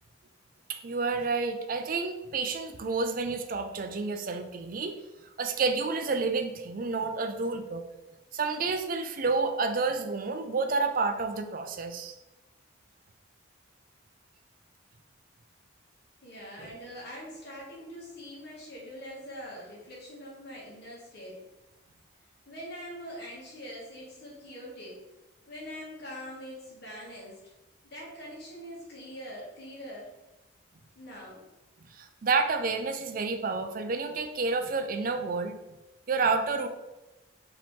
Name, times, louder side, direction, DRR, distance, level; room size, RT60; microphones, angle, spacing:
voice 1, 0.7-5.0 5.4-7.8 8.3-12.2 31.9-35.6 36.1-36.7, right 4 dB, 40° right, 7 dB, 0.4 m, -29 dB
voice 2, 16.2-21.4 22.4-25.0 25.5-27.4 27.8-30.1 30.9-31.4, equal, 50° left, -4 dB, 1.5 m, -43 dB
4.9 x 3.0 x 3.6 m, 1.0 s
head